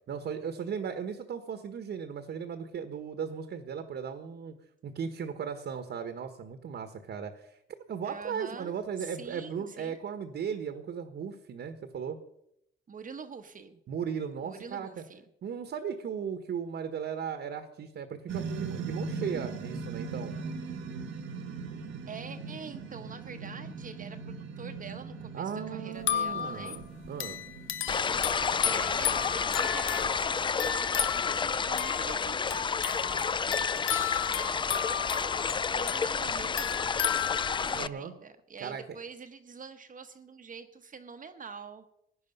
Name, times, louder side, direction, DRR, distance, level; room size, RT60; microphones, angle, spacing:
voice 1, 0.1-4.5 4.8-7.6 7.9-12.2 13.9-15.0 15.4-20.3 25.3-27.4 37.7-38.1 38.6-38.8, right 7 dB, 60° right, 8 dB, 1.4 m, -37 dB
voice 2, 8.0-10.0 12.9-13.8 14.4-15.2 22.1-26.8 28.4-32.7 35.7-41.8, right 5 dB, 40° right, 7 dB, 1.1 m, -45 dB
sound 1, 18.3-29.7, right 4 dB, 75° right, 1.5 m, -40 dB
sound 2, 25.9-37.9, left 10 dB, 80° left, 1.0 m, -34 dB
sound 3, 27.9-37.9, left 5 dB, 25° left, 0.4 m, -30 dB
16.0 x 10.0 x 5.5 m, 0.78 s
cardioid pair, 90°, 20 cm